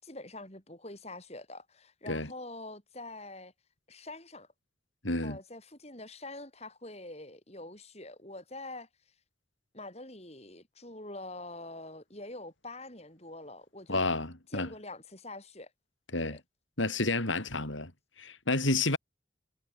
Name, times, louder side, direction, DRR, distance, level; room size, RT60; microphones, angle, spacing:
voice 1, 0.0-3.5 3.9-4.5 5.2-8.9 9.7-14.0 14.5-15.7 16.2-16.4, left 2 dB, 35° left, 7.4 m, -45 dB
voice 2, 5.0-5.4 13.9-14.7 16.1-16.4 16.8-17.9 18.2-19.0, left 2 dB, 80° left, 6.9 m, -30 dB
head